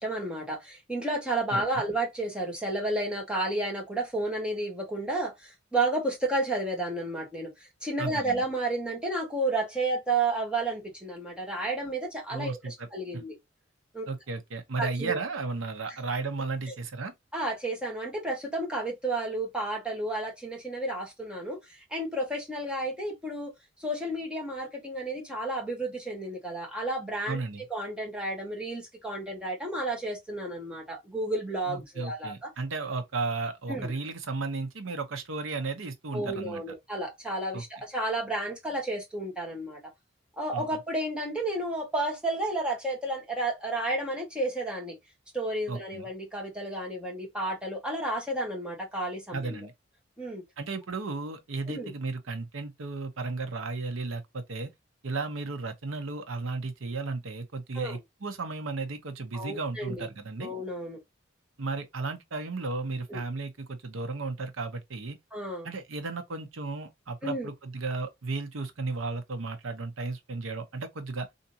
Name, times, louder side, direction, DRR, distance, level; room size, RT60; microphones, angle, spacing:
voice 1, 0.0-7.5 7.8-13.3 13.9-14.1 14.8-15.2 17.3-21.6 21.9-23.5 23.8-27.4 27.7-32.5 33.7-33.9 36.1-39.8 40.4-45.0 45.3-49.7 50.2-50.4 51.7-51.9 57.7-58.0 59.3-60.1 60.4-61.0 63.1-63.2 65.3-65.7 67.2-67.5, right 2 dB, 5° right, 1.3 m, -31 dB
voice 2, 1.5-1.8 8.0-8.4 12.3-12.9 14.1-17.1 27.3-27.6 31.7-36.7 37.5-37.7 40.5-40.6 45.7-46.0 49.3-49.7 50.6-54.7 55.0-60.5 61.6-65.2 65.6-71.3, right 3 dB, 80° right, 0.9 m, -34 dB
3.6 x 2.7 x 2.7 m
head